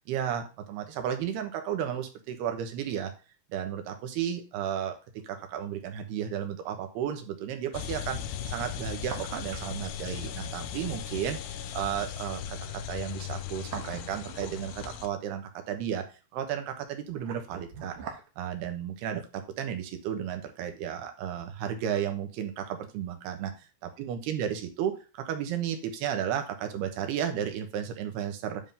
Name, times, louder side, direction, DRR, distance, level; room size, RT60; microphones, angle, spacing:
voice 1, 0.1-3.1 3.5-5.0 5.2-8.2 8.5-16.1 16.3-18.0 18.4-28.6, right 9 dB, 80° right, 6 dB, 3.1 m, -33 dB
sound 1, 7.7-15.1, left 9 dB, 85° left, 2.8 m, -38 dB
sound 2, 8.8-9.8 10.0-10.1 13.3-15.0 16.8-18.3 18.6-18.7, right 7 dB, 65° right, 2.5 m, -42 dB
9.9 x 3.8 x 5.5 m, 0.32 s
omnidirectional pair, 4.7 m